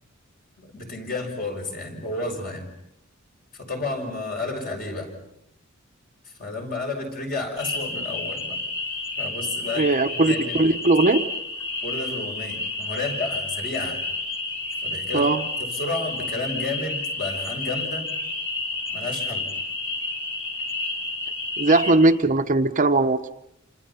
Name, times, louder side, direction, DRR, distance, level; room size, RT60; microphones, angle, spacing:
voice 1, 0.6-2.7 3.5-5.1 6.2-8.6 9.2-10.6 11.8-14.0 14.8-15.3 15.6-18.1 18.9-19.5, left 2 dB, 45° left, 2 dB, 5.8 m, -31 dB
sound 1, 7.6-21.9, left 3 dB, 30° left, 5.8 m, -30 dB
voice 2, 9.7-11.2 15.1-15.5 21.6-23.2, right 2 dB, 40° right, 7 dB, 1.0 m, -19 dB
28.5 x 26.5 x 5.7 m, 0.79 s
head